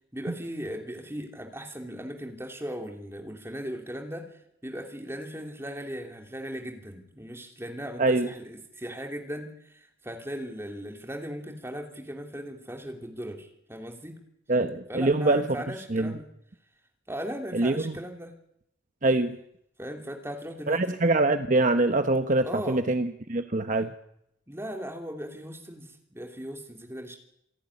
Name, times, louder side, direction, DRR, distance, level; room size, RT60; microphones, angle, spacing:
voice 1, 0.1-4.3 4.6-14.1 14.9-16.3 17.1-18.3 19.8-21.0 22.4-22.8 24.5-27.2, equal, 15° right, 3 dB, 3.0 m, -38 dB
voice 2, 14.5-15.4 15.9-16.1 17.5-18.0 19.0-19.4 20.7-23.9, right 2 dB, 40° right, 8 dB, 0.9 m, -24 dB
27.5 x 11.5 x 9.8 m, 0.77 s
head